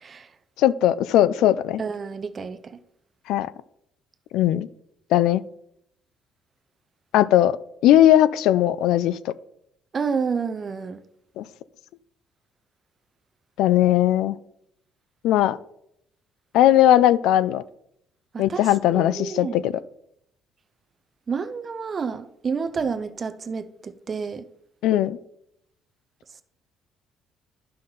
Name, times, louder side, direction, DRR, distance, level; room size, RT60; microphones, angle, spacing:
voice 1, 0.6-1.8 3.3-3.5 4.3-4.7 5.1-5.4 7.1-7.6 7.8-9.3 11.4-11.5 13.6-14.4 15.2-15.6 16.5-17.6 18.4-19.7 24.8-25.2, left 12 dB, 80° left, 0.4 m, -18 dB
voice 2, 1.8-2.8 9.9-11.0 18.3-18.6 18.9-19.7 21.3-24.4, right 5 dB, 30° right, 0.5 m, -29 dB
11.5 x 5.7 x 3.9 m
cardioid pair, 160°, 0 cm